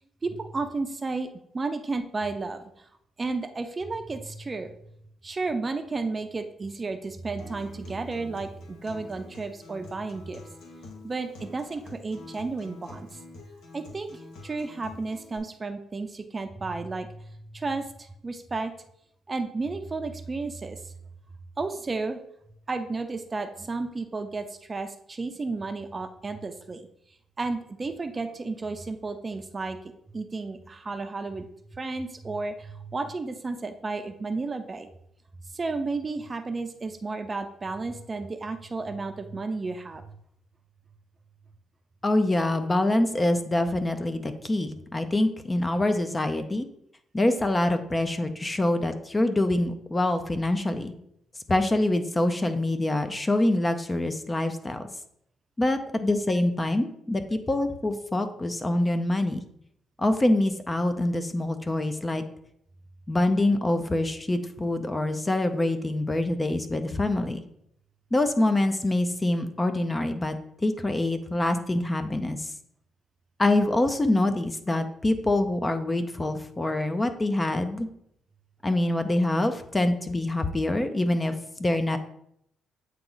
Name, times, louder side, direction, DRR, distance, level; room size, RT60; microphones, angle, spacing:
voice 1, 0.2-2.6 3.2-4.7 5.2-10.4 11.0-13.1 13.7-18.7 19.3-20.8 21.6-22.2 22.7-26.9 27.4-29.8 30.1-31.5 31.7-34.9 35.5-40.0, right 3 dB, 30° right, 8 dB, 0.5 m, -32 dB
Acoustic guitar, 7.4-15.4, left 2 dB, 80° left, 1.4 m, -47 dB
voice 2, 42.0-46.7 47.1-50.9 51.5-54.9 55.6-59.4 60.0-62.2 63.1-67.4 68.1-70.4 70.6-72.5 73.4-77.9 78.6-82.0, left 1 dB, 20° left, 8 dB, 0.5 m, -25 dB
8.4 x 2.9 x 3.9 m, 0.72 s
cardioid pair, 90°, 0 cm